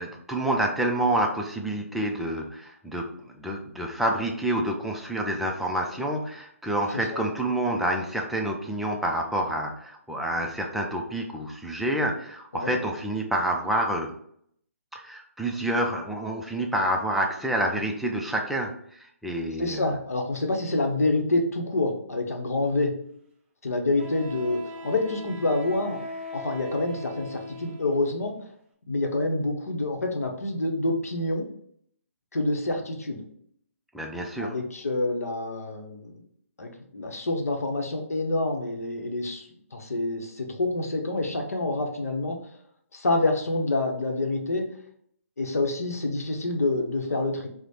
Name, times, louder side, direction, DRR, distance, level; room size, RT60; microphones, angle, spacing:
voice 1, 0.0-14.1 14.9-19.9 33.9-34.5, right 1 dB, ahead, 0 dB, 0.3 m, -28 dB
voice 2, 19.6-22.9 23.6-26.0 26.3-28.3 28.9-31.5 32.3-33.2 34.4-36.2 36.6-42.4 42.9-44.6 45.4-47.5, left 2 dB, 75° left, 2 dB, 0.8 m, -27 dB
Wind instrument woodwind instrument, 22.7-22.8 24.0-28.0, left 1 dB, 20° right, 1.0 m, -39 dB
3.1 x 2.0 x 4.0 m, 0.67 s
figure-of-eight pair, 140°, 8 cm